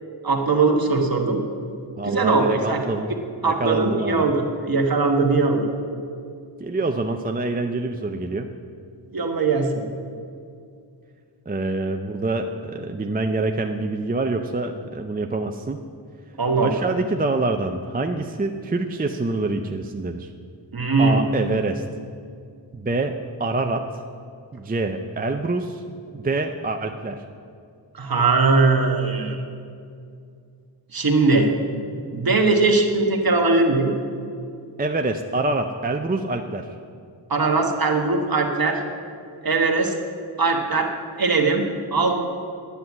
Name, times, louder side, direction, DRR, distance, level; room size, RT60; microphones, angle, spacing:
voice 1, 0.2-1.4 2.0-2.8 3.4-5.7 9.1-9.8 16.4-16.8 20.7-21.3 27.9-29.4 30.9-31.5 32.1-33.9 37.3-38.8 39.4-39.9 40.4-40.9 41.2-42.2, right 3 dB, 50° right, 2 dB, 1.4 m, -20 dB
voice 2, 2.0-3.1 3.4-4.2 6.6-8.5 11.5-15.8 16.6-20.3 21.0-21.8 22.7-23.9 24.5-25.8 26.1-27.2 34.8-36.7, right 2 dB, 20° right, 5 dB, 0.5 m, -26 dB
10.0 x 9.4 x 7.2 m, 2.4 s
wide cardioid pair, 115°, 45 cm